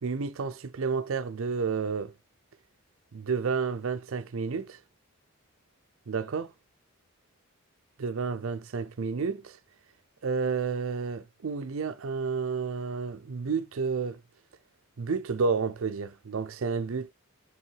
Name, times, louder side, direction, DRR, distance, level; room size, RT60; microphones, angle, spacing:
voice 1, 0.0-2.1 3.1-4.8 6.1-6.5 8.0-9.6 10.2-14.2 15.0-17.1, right 5 dB, 65° right, 0.5 m, -30 dB
7.4 x 3.5 x 4.5 m
head